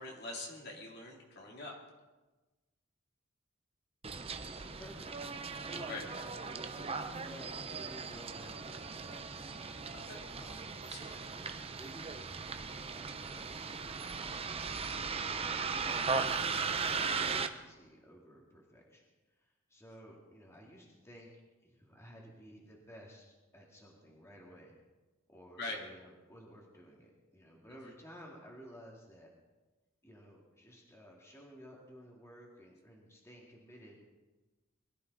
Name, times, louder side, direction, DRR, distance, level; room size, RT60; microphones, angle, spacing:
voice 1, 0.0-1.7 5.9-6.0 9.9-10.2 10.9-11.2 25.6-25.8, left 2 dB, 55° left, -1 dB, 3.3 m, -43 dB
Bus, 4.0-17.5, right 5 dB, 30° right, 0.8 m, -38 dB
voice 2, 4.1-5.1 5.7-9.6 10.3-10.6 11.0-16.6 17.0-21.3 21.6-24.7 25.3-29.3 30.0-34.0, equal, 15° left, -2 dB, 2.4 m, -55 dB
22.0 x 13.0 x 4.1 m, 1.2 s
head